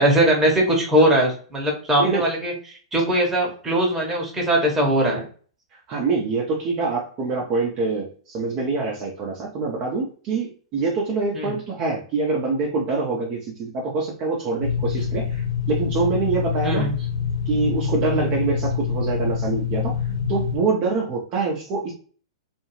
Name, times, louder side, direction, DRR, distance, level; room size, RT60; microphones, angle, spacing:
voice 1, 0.0-5.2 11.3-11.5 16.6-16.9, right 1 dB, 10° right, -2 dB, 1.0 m, -20 dB
voice 2, 5.9-17.1 17.5-20.0 20.3-21.9, right 4 dB, 35° right, -3 dB, 0.6 m, -25 dB
sound 1, 14.6-20.6, left 7 dB, 85° left, 1.0 m, -26 dB
2.5 x 2.3 x 3.1 m, 0.43 s
hypercardioid pair, 110°, 3 cm